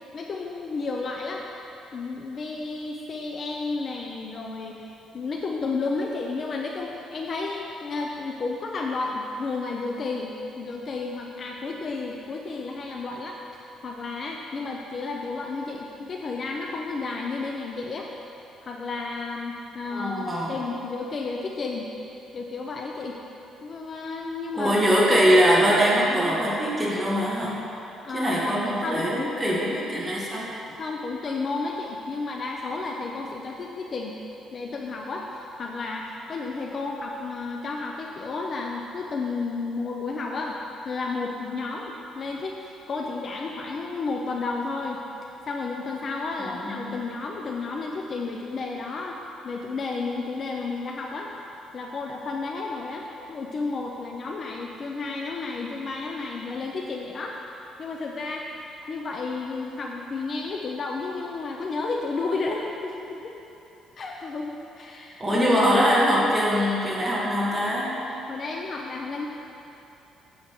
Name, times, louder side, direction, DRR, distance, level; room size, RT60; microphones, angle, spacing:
voice 1, 0.1-1.4 1.9-4.8 5.1-18.1 18.6-21.9 22.3-23.2 23.6-24.8 28.0-29.5 30.7-34.2 34.5-40.6 40.8-45.0 45.5-49.2 49.4-51.3 51.7-57.4 57.8-58.4 58.9-63.4 64.0-65.4 68.3-69.3, left 3 dB, 35° left, 0 dB, 0.6 m, -32 dB
voice 2, 19.9-20.5 24.5-27.6 28.1-29.1 29.4-30.5 46.4-46.9 65.2-68.0, equal, 10° right, -6 dB, 1.8 m, -22 dB
10.0 x 7.8 x 3.7 m, 2.9 s
cardioid pair, 150°, 0 cm